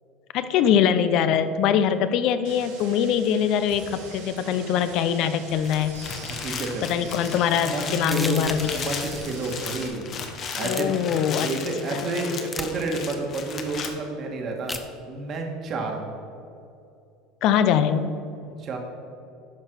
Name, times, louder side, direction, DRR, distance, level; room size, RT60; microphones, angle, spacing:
voice 1, 0.3-6.0 6.8-8.8 10.6-11.5 11.9-12.0 17.4-18.1, left 8 dB, 60° left, 11 dB, 0.5 m, -23 dB
sound 1, 2.4-9.9, right 3 dB, 75° right, 1.7 m, -43 dB
sound 2, 5.5-13.9, left 6 dB, 40° left, 1.1 m, -35 dB
voice 2, 6.2-6.9 7.6-10.1 10.5-11.1 11.3-14.8 15.1-16.1 18.4-18.8, right 3 dB, 45° right, 2 dB, 1.6 m, -30 dB
sound 3, 8.0-9.3 10.6-10.8 12.5-12.7 14.7-14.9, left 2 dB, 10° left, 0.7 m, -34 dB
10.5 x 4.0 x 6.2 m, 2.6 s
supercardioid pair, 110°, 0 cm